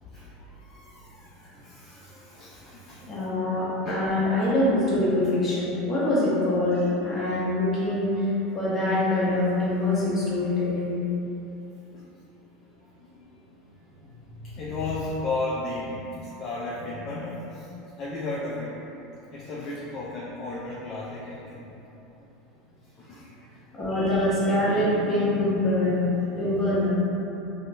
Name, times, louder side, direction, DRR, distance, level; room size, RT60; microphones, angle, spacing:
voice 1, 0.0-3.1 3.8-4.2 6.7-6.9 11.9-12.1 13.0-13.3 14.4-17.7 18.0-18.8 19.3-21.7 22.9-23.3, left 2 dB, 45° left, -5 dB, 0.3 m, -35 dB
voice 2, 3.0-11.0 14.3-14.4 23.7-26.9, left 1 dB, 30° left, -8 dB, 0.9 m, -24 dB
2.9 x 2.1 x 2.6 m, 3.0 s
hypercardioid pair, 100°, 0 cm